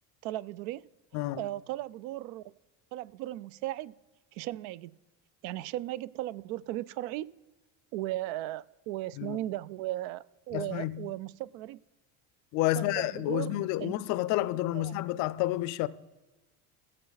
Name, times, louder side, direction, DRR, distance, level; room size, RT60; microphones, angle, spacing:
voice 1, 0.2-2.4 2.9-3.9 4.3-4.9 5.4-7.3 7.9-11.8 12.8-13.9 14.7-15.0, right 15 dB, 75° right, 0.5 m, -37 dB
voice 2, 1.1-1.4 9.2-9.4 10.5-11.1 12.5-15.9, left 16 dB, 50° left, 0.4 m, -30 dB
14.5 x 7.7 x 4.0 m
cardioid pair, 170°, 37 cm